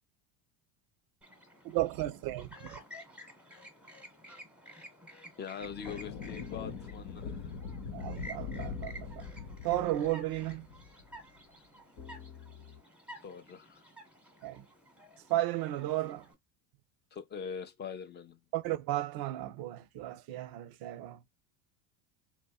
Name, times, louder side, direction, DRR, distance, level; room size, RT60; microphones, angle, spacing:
Chirp tweet, 1.2-16.3, equal, ahead, 0.9 m, -52 dB
voice 1, 1.6-2.7 7.9-9.3 9.6-10.7 14.4-14.6 15.3-16.3 18.5-21.2, right 15 dB, 50° right, 0.5 m, -34 dB
voice 2, 5.4-7.6 13.2-13.8 17.1-18.4, left 6 dB, 25° left, 0.4 m, -43 dB
sound 1, 5.6-11.2, left 5 dB, 90° left, 0.9 m, -42 dB
sound 2, 8.5-11.3 12.0-12.8, left 7 dB, 60° left, 1.1 m, -51 dB
2.6 x 2.1 x 2.2 m
hypercardioid pair, 85°, 50 cm